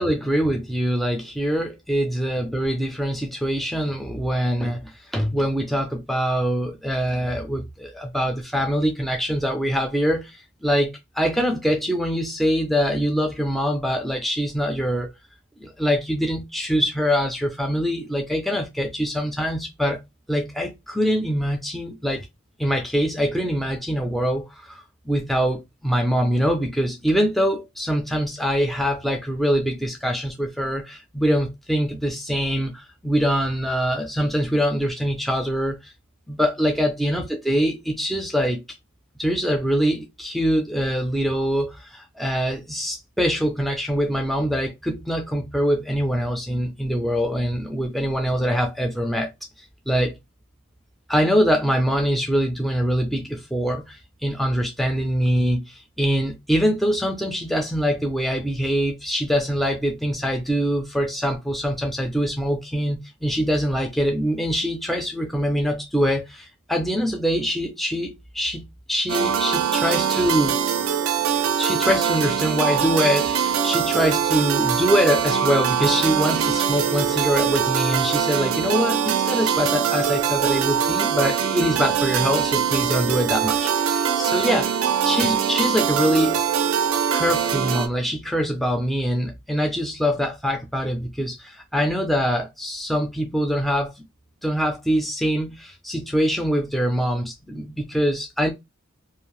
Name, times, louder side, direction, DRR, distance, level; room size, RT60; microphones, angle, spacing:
voice 1, 0.0-15.1 15.6-20.0 20.3-22.3 22.6-35.9 36.3-38.6 39.2-49.3 49.9-50.2 51.1-70.6 71.6-84.7 85.0-86.4 87.1-94.1 94.4-98.5, equal, ahead, 0.4 m, -24 dB
sound 1, 69.1-87.9, right 8 dB, 70° right, 0.4 m, -22 dB
2.5 x 2.0 x 3.0 m
head